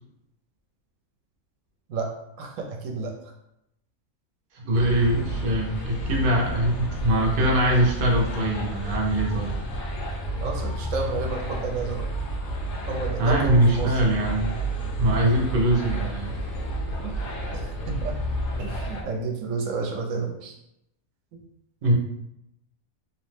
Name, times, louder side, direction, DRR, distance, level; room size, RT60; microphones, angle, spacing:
voice 1, 2.4-3.1 10.4-12.1 12.8-14.0 17.0-17.1 17.5-18.1 18.6-20.6, right 4 dB, 75° right, 0 dB, 0.9 m, -31 dB
voice 2, 4.5-9.5 13.2-14.5 15.0-16.3 21.8-21.9, right 1 dB, 55° right, -1 dB, 0.5 m, -22 dB
sound 1, 4.7-19.0, right 1 dB, 65° left, 0.8 m, -30 dB
2.7 x 2.0 x 3.1 m, 0.81 s
omnidirectional pair, 1.4 m